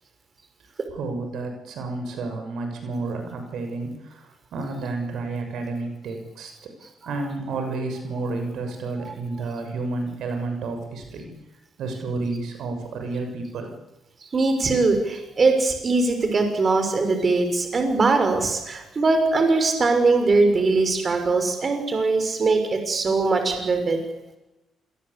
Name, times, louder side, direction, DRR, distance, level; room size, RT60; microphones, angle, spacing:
voice 1, 0.9-6.7 7.0-11.3 11.8-13.7, right 3 dB, 75° right, 5 dB, 6.8 m, -31 dB
voice 2, 14.3-24.0, right 3 dB, 40° right, 6 dB, 6.2 m, -21 dB
27.0 x 22.0 x 8.6 m, 0.96 s
cardioid pair, 90°, 0 cm